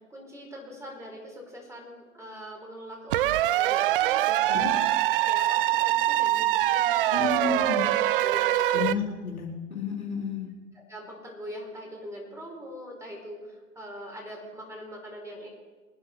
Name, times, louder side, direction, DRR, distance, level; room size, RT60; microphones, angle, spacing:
voice 1, 0.0-4.7 5.2-9.0 10.7-15.5, equal, 5° right, -1 dB, 4.5 m, -42 dB
sound 1, 3.1-8.9, right 14 dB, 45° right, 0.4 m, -24 dB
voice 2, 7.1-7.8 8.7-10.5, left 6 dB, 90° left, -3 dB, 4.1 m, -31 dB
23.0 x 10.0 x 4.5 m, 1.4 s
figure-of-eight pair, 105°, 41 cm